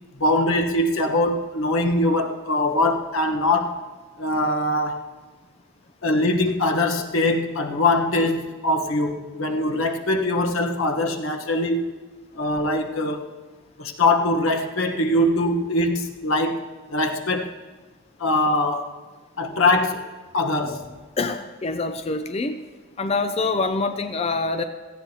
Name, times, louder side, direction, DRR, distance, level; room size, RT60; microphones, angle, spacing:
voice 1, 0.2-3.8 4.2-5.1 6.0-11.9 12.3-13.3 13.8-17.5 18.2-18.9 19.4-20.1 20.3-20.8, left 2 dB, 85° left, 4 dB, 1.2 m, -22 dB
voice 2, 21.2-22.6 23.0-24.6, left 3 dB, 30° left, 8 dB, 0.5 m, -25 dB
17.0 x 14.5 x 2.9 m, 1.4 s
head